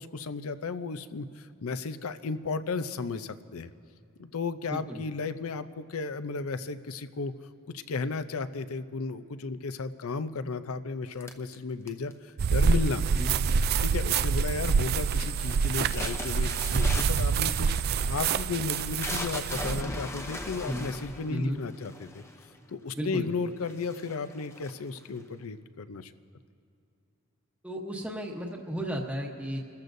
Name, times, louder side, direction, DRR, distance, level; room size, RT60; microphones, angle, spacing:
voice 1, 0.0-3.7 4.2-7.3 7.7-13.0 13.8-22.2 22.7-26.1, left 4 dB, 80° left, 12 dB, 0.6 m, -34 dB
voice 2, 4.7-5.0 13.1-13.3 20.7-20.9 21.3-21.6 23.0-23.3 27.6-29.6, equal, 5° right, -1 dB, 1.0 m, -33 dB
sound 1, 11.2-12.3 13.1-13.6 13.9-14.4 14.8-15.2 15.5-22.6 23.2-23.3 23.6-25.2, left 2 dB, 10° left, 0.7 m, -39 dB
sound 2, 12.4-19.8, right 5 dB, 45° right, 0.3 m, -26 dB
29.5 x 14.0 x 2.7 m, 2.6 s
head